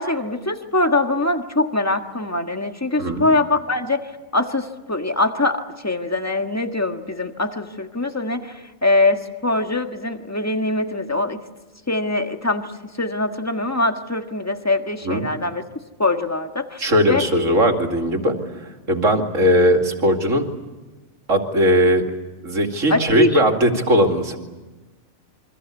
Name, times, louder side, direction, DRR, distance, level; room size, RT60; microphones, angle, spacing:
voice 1, 0.0-11.4 11.9-12.7 13.0-15.6 16.0-16.8 17.1-17.2 22.9-23.4, left 2 dB, 10° left, 6 dB, 1.5 m, -22 dB
voice 2, 16.8-20.5 21.3-22.0 22.4-24.4, equal, 65° right, 4 dB, 2.9 m, -19 dB
27.5 x 24.5 x 8.4 m, 1.2 s
omnidirectional pair, 1.4 m